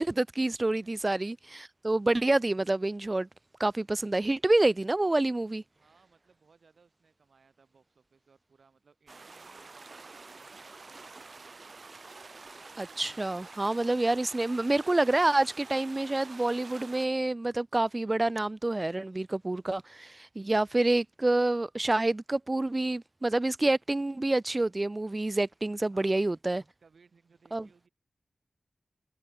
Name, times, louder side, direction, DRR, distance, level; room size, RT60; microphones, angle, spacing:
voice 1, 0.0-3.3 3.6-5.6 12.8-26.6 27.5-27.7, right 2 dB, 35° right, 0.4 m, -27 dB
voice 2, 0.7-1.1 5.7-11.6 25.8-26.3 26.8-27.9, right 5 dB, 80° right, 8.0 m, -64 dB
sound 1, 9.1-17.1, right 3 dB, 60° right, 1.9 m, -48 dB
cardioid pair, 50°, 0 cm